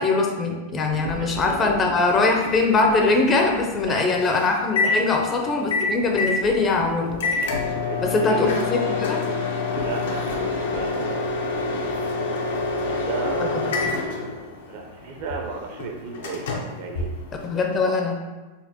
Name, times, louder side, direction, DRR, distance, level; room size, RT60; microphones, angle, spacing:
voice 1, 0.0-7.2 8.0-9.2 13.4-13.5 13.8-14.0 17.4-18.1, left 3 dB, 25° left, 2 dB, 0.5 m, -22 dB
sound 1, 0.7-3.9 4.3-4.5 4.8-4.9 5.2-14.0, right 1 dB, 85° right, 0.8 m, -39 dB
voice 2, 1.6-2.1 3.8-4.1 4.8-5.0 7.8-8.6 9.2-9.4 9.7-11.4 12.8-13.7 14.7-16.5 16.8-17.1 17.8-17.9, right 4 dB, 55° right, 1 dB, 0.6 m, -33 dB
Microwave oven, 2.1-17.8, left 3 dB, 75° left, 0.6 m, -28 dB
4.1 x 2.1 x 2.8 m, 1.2 s
hypercardioid pair, 120°, 0 cm